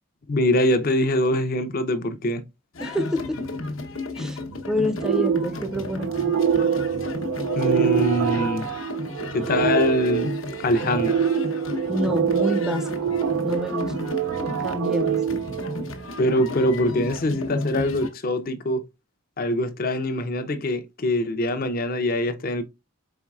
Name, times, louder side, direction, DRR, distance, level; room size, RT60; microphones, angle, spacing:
voice 1, 0.3-2.4 7.6-8.7 9.3-10.3 10.6-11.3 16.2-18.8 19.4-22.6, left 1 dB, 45° left, 0.5 m, -23 dB
sound 1, 2.7-18.1, left 3 dB, 70° left, 0.8 m, -33 dB
voice 2, 2.8-3.4 4.1-4.4 4.6-6.4 11.9-13.2 13.4-14.0 14.6-15.2, left 1 dB, 5° right, 0.5 m, -28 dB
sound 2, 5.0-16.3, right 8 dB, 80° right, 0.3 m, -25 dB
4.3 x 4.0 x 2.3 m
head